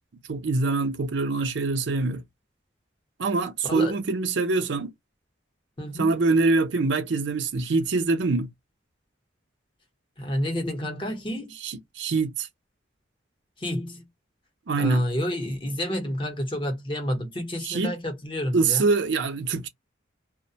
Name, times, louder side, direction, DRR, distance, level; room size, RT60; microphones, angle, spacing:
voice 1, 0.3-2.2 3.2-4.9 5.9-8.5 11.6-12.5 14.7-15.0 17.6-17.9 18.5-19.7, right 3 dB, 75° right, 0.6 m, -24 dB
voice 2, 3.6-3.9 5.8-6.1 10.2-11.5 13.6-14.0 14.8-18.8, equal, 25° left, 0.8 m, -29 dB
2.4 x 2.1 x 2.7 m
head